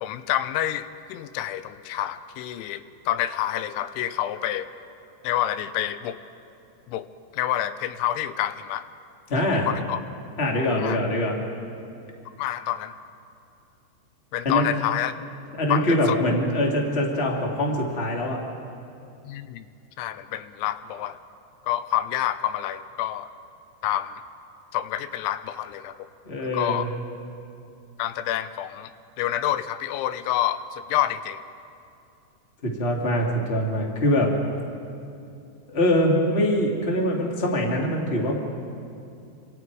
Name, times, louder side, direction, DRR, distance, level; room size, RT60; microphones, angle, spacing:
voice 1, 0.0-4.7 5.2-6.2 6.9-7.1 7.3-8.8 9.7-10.0 10.8-11.0 12.4-12.9 14.3-15.1 15.7-16.2 19.2-19.7 20.0-21.2 21.7-23.3 23.8-24.2 24.7-26.1 26.4-26.9 28.0-28.9 29.2-31.4, left 12 dB, 80° left, 12 dB, 2.9 m, -28 dB
voice 2, 9.3-9.7 10.4-11.3 14.4-14.6 15.6-18.4 26.2-26.9 32.6-34.3 35.7-38.4, left 1 dB, 60° left, -1 dB, 0.6 m, -23 dB
27.5 x 26.5 x 4.7 m, 2.6 s
omnidirectional pair, 5.7 m